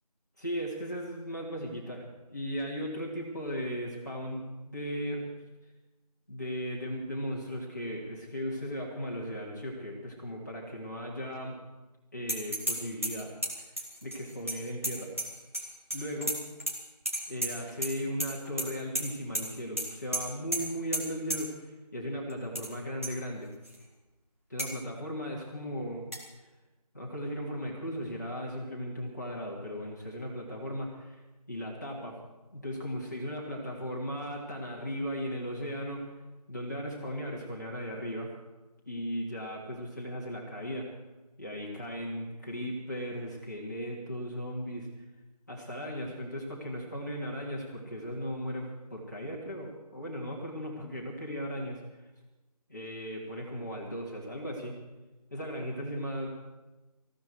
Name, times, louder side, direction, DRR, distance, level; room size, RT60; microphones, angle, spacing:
voice 1, 0.4-5.2 6.3-11.6 12.1-13.3 14.0-15.1 15.9-16.4 17.3-23.5 24.5-26.0 26.9-31.2 31.5-32.2 32.5-36.1 36.5-38.3 38.9-40.9 41.4-44.9 45.5-51.8 52.7-54.8 55.3-56.3, equal, 25° left, -4 dB, 2.9 m, -37 dB
sound 1, 12.3-12.8 13.0-15.6 15.9-16.7 17.1-17.9 18.2-18.7 18.9-19.0 19.3-19.4 19.8-19.9 20.1-20.2 20.5-20.6 20.9-21.0 21.3-21.4 22.3-22.7 23.0-23.1 23.6-23.7 24.6-24.7 26.1-26.2, right 1 dB, 20° right, 1.7 m, -32 dB
18.5 x 16.0 x 4.7 m, 1.1 s
figure-of-eight pair, 180°, 21 cm